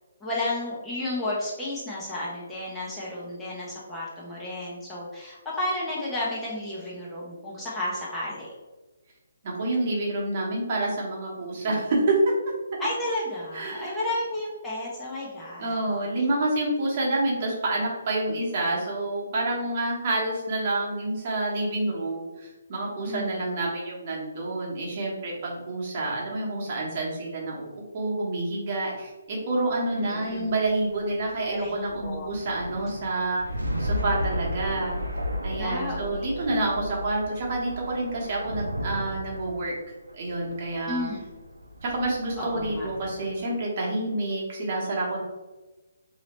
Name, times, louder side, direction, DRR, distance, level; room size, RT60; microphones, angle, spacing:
voice 1, 0.2-8.5 12.8-15.9 23.0-23.5 30.0-30.5 31.5-32.3 35.5-36.4 40.9-41.2 42.4-42.9, left 1 dB, 10° left, -7 dB, 0.8 m, -32 dB
voice 2, 9.4-12.2 13.5-14.0 15.6-33.4 33.8-35.0 35.4-39.7 40.1-41.1 41.8-45.2, right 2 dB, 40° right, -3 dB, 1.2 m, -28 dB
sound 1, 30.0-43.6, equal, 85° right, 0.6 m, -34 dB
3.9 x 2.9 x 3.0 m, 1.2 s
figure-of-eight pair, 135°, 0 cm